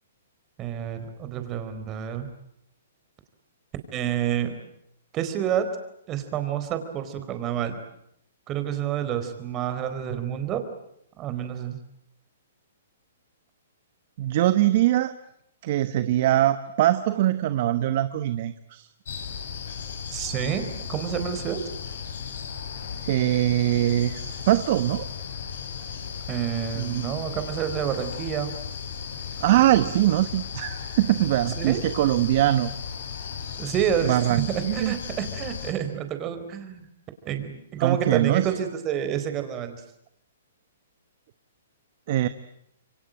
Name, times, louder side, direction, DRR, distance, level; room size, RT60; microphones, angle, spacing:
voice 1, 0.6-2.3 3.9-4.5 5.1-5.7 6.1-7.8 8.5-10.6 11.2-11.8 20.1-21.6 26.3-28.5 31.6-31.8 33.6-36.9 37.3-39.8, right 9 dB, 25° right, 9 dB, 4.2 m, -28 dB
voice 2, 14.2-15.1 15.6-18.9 23.0-25.1 26.7-27.1 29.4-32.7 34.0-35.0 37.8-38.5 42.1-42.3, right 14 dB, 50° right, 12 dB, 1.2 m, -22 dB
sound 1, 19.1-35.7, left 7 dB, 70° left, 6.7 m, -36 dB
27.5 x 24.0 x 9.1 m, 0.74 s
hypercardioid pair, 145°, 0 cm